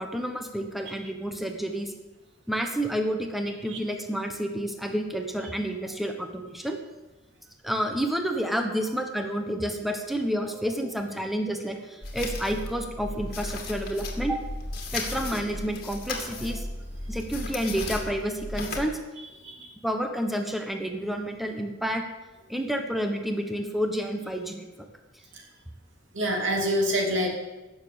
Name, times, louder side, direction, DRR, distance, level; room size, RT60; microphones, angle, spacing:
voice 1, 0.0-1.9 2.5-6.8 7.6-14.4 14.9-16.7 17.1-18.9 19.8-22.0 22.5-24.7, equal, ahead, 4 dB, 1.2 m, -29 dB
sound 1, 12.0-18.9, left 2 dB, 50° left, 2.3 m, -35 dB
voice 2, 26.1-27.3, equal, 75° right, 1 dB, 3.0 m, -26 dB
16.5 x 7.1 x 7.1 m, 1.1 s
head